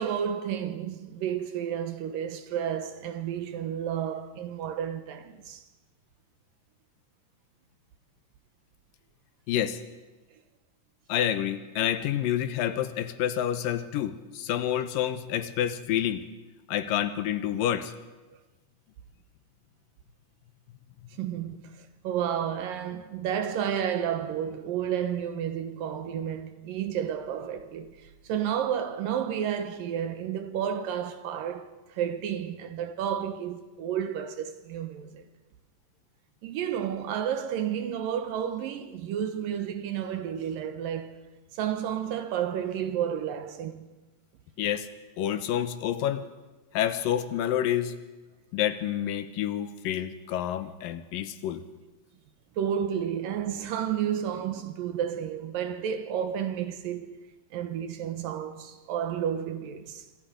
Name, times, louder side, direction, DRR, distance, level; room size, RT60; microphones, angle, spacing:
voice 1, 0.0-5.6 21.2-35.2 36.4-41.1 41.5-43.9 52.6-57.3 57.5-60.1, right 9 dB, 75° right, 2.8 m, -31 dB
voice 2, 9.5-9.8 11.1-16.2 16.7-17.9 44.6-44.9 45.2-46.3 46.7-48.0 48.5-51.6, left 11 dB, 75° left, 2.6 m, -28 dB
26.5 x 26.5 x 5.2 m
omnidirectional pair, 4.1 m